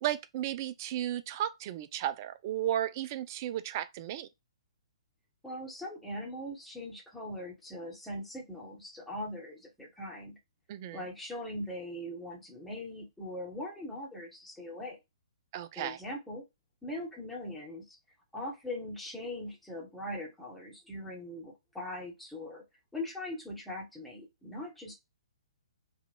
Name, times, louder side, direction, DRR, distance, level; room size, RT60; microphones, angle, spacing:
voice 1, 0.0-4.3 10.7-11.1 15.5-16.0, right 12 dB, 35° right, 0.4 m, -34 dB
voice 2, 5.4-10.4 10.9-15.0 15.8-16.5 16.8-18.0 18.3-22.6 22.9-24.9, left 1 dB, 5° left, 1.2 m, -41 dB
3.5 x 2.4 x 4.3 m
figure-of-eight pair, 125°, 3 cm